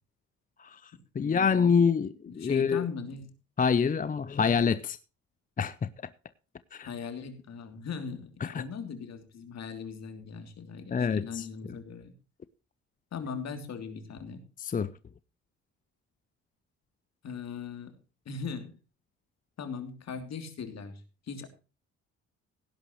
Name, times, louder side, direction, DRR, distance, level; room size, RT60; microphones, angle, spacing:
voice 1, 0.6-0.9 1.2-2.9 3.6-5.0 5.6-5.9 6.7-6.9 8.4-8.6 10.9-11.5 14.6-14.9, left 6 dB, 25° left, 0.6 m, -26 dB
voice 2, 1.2-1.8 2.3-3.3 6.8-12.1 13.1-14.4 17.2-18.0 18.2-18.8 19.6-21.0 21.3-21.5, left 5 dB, 60° left, 3.1 m, -39 dB
17.0 x 11.0 x 3.1 m
cardioid pair, 90°, 30 cm